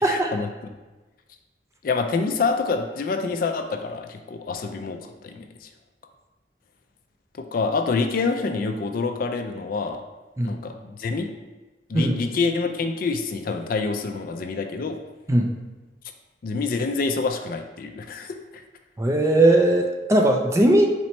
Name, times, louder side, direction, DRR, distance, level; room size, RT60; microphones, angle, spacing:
voice 1, 0.0-0.5 1.8-5.7 7.4-10.0 10.4-11.3 11.9-15.0 16.4-18.3, left 4 dB, 50° left, 5 dB, 0.3 m, -27 dB
voice 2, 19.0-20.9, right 1 dB, 15° right, 2 dB, 0.4 m, -19 dB
4.2 x 2.9 x 4.2 m, 1.2 s
head